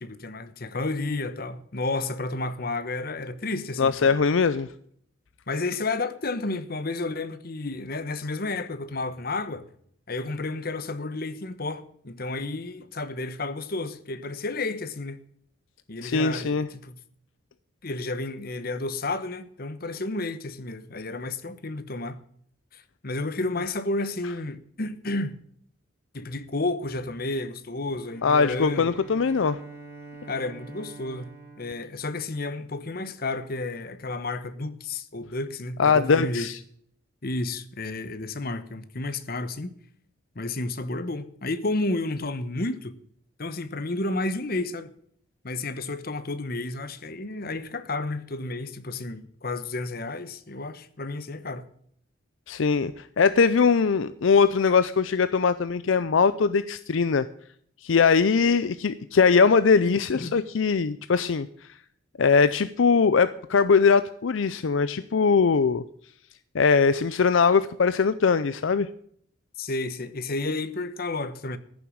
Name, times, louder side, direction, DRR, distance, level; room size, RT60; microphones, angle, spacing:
voice 1, 0.0-4.2 5.5-9.6 10.1-15.2 15.9-17.0 17.8-22.2 22.7-25.4 26.1-29.0 30.3-31.3 31.6-36.5 37.2-39.7 40.3-42.9 43.4-44.9 45.4-51.6 60.1-60.3 69.6-71.6, left 2 dB, 45° left, 1.0 m, -31 dB
voice 2, 3.8-4.7 16.0-16.7 28.2-29.6 35.8-36.6 52.5-57.3 57.8-61.5 62.2-65.8 66.5-68.9, left 5 dB, 70° left, 0.5 m, -21 dB
Bowed string instrument, 28.0-32.8, right 3 dB, 10° right, 3.3 m, -46 dB
14.5 x 7.1 x 8.7 m
head